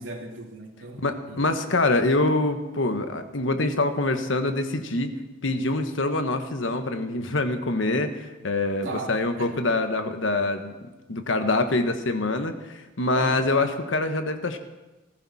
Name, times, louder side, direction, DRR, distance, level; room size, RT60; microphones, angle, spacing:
voice 1, 0.0-1.4 8.8-9.6 13.1-13.4, right 2 dB, 90° right, 1 dB, 2.5 m, -36 dB
voice 2, 1.0-5.1 5.4-10.7 11.1-14.6, left 2 dB, 85° left, 7 dB, 1.4 m, -25 dB
20.0 x 15.0 x 4.3 m, 1.1 s
head